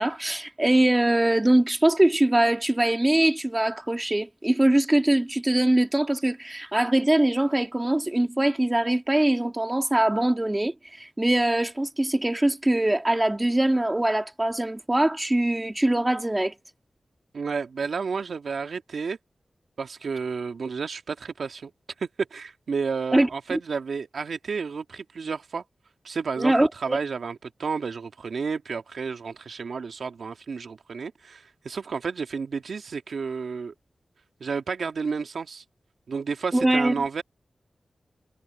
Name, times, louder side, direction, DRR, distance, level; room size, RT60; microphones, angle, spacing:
voice 1, 0.0-16.5 23.1-23.6 26.4-27.0 36.5-36.9, right 1 dB, 15° right, 2.2 m, -22 dB
voice 2, 17.3-19.2 19.8-21.7 22.0-25.6 26.0-33.7 34.4-35.6 36.1-37.2, right 5 dB, 80° right, 1.8 m, -31 dB
wide cardioid pair, 85°, 0 cm